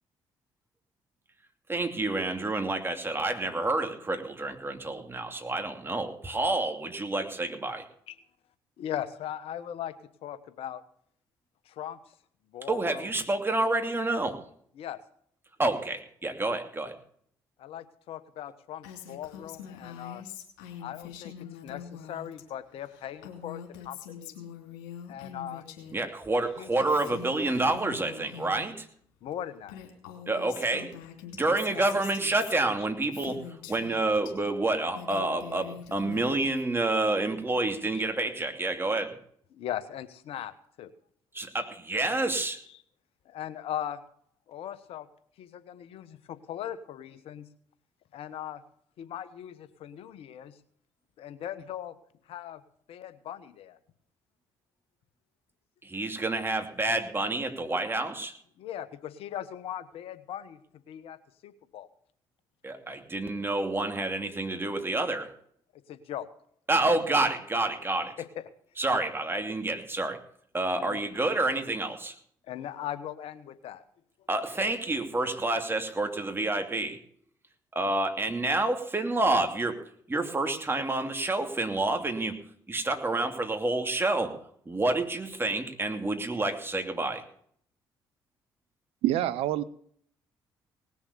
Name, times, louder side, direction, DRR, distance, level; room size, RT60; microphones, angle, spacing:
voice 1, 1.7-7.9 12.7-14.4 15.6-17.0 25.9-28.9 30.3-30.9 31.3-39.1 41.3-42.6 55.8-58.3 62.6-65.3 66.7-68.1 68.8-70.2 70.5-72.1 74.3-77.0 77.7-79.8 80.1-82.4 82.7-84.3 84.7-87.2, right 2 dB, 20° right, 5 dB, 2.8 m, -28 dB
voice 2, 8.8-9.9 10.2-10.8 11.6-12.1 12.5-13.1 14.8-15.0 17.6-20.2 20.8-24.3 25.1-25.6 26.6-26.7 29.2-29.8 31.7-31.9 36.4-36.5 39.5-40.9 43.2-44.0 44.5-45.1 45.4-47.5 48.1-48.6 49.0-50.6 51.2-52.0 52.3-52.6 52.9-53.8 58.6-60.6 60.9-61.2 61.4-61.9 65.9-66.3 68.2-68.5 70.9-71.0 72.5-73.8, left 11 dB, 70° left, 13 dB, 1.2 m, -39 dB
Female speech woman speaking, 18.8-22.4 22.7-26.0 26.3-28.7 29.3-29.4 29.6-34.3 34.8-36.7, left 8 dB, 85° left, 3.0 m, -44 dB
voice 3, 89.0-89.6, right 13 dB, 75° right, 17 dB, 0.6 m, -26 dB
19.0 x 7.1 x 6.8 m, 0.62 s
hypercardioid pair, 55°, 10 cm